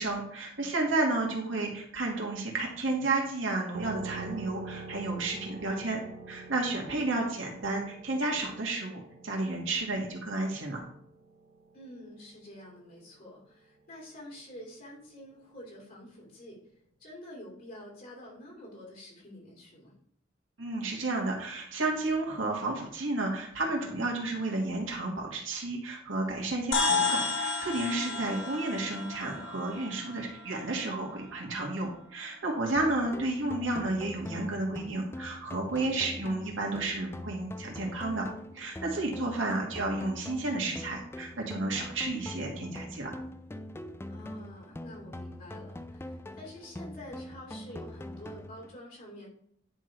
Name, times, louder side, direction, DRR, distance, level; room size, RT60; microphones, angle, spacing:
voice 1, 0.0-6.0 6.3-10.8 20.6-38.3 38.5-43.1, right 2 dB, 70° right, -1 dB, 2.2 m, -32 dB
sound 1, 3.7-12.9, right 3 dB, 50° right, 1.0 m, -46 dB
voice 2, 11.7-16.6 17.0-19.9 27.9-28.4 35.7-36.1 39.3-39.7 44.1-49.3, left 1 dB, 45° left, -2 dB, 3.0 m, -48 dB
sound 2, 26.7-31.3, left 4 dB, 75° left, 1.1 m, -32 dB
sound 3, 32.8-48.8, left 1 dB, 15° left, 0.4 m, -43 dB
10.0 x 3.8 x 4.7 m, 0.67 s
head